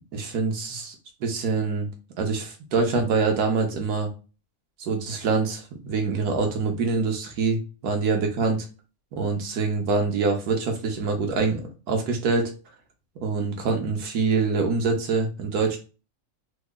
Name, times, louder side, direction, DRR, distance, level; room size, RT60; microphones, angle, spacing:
voice 1, 0.1-0.9 1.2-1.9 2.2-4.1 4.8-8.6 9.2-11.6 11.9-12.5 13.2-15.8, right 4 dB, 90° right, 3 dB, 1.4 m, -25 dB
3.6 x 2.1 x 3.6 m, 0.33 s
omnidirectional pair, 1.6 m